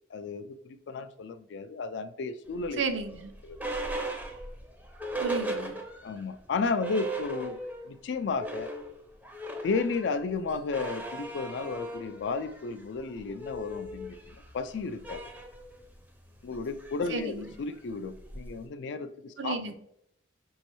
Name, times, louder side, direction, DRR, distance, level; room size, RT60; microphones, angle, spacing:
voice 1, 0.1-2.8 3.4-3.7 6.0-7.6 7.9-8.7 9.6-15.3 16.4-19.6, left 4 dB, 65° left, 11 dB, 0.3 m, -33 dB
sound 1, 2.6-6.2 6.5-6.6 6.8-7.9 8.2-18.7, right 1 dB, 10° right, 0.5 m, -38 dB
voice 2, 2.8-3.3 5.2-5.8 17.1-17.5 19.4-19.7, right 4 dB, 70° right, 7 dB, 0.5 m, -33 dB
5.3 x 3.1 x 3.0 m, 0.75 s
head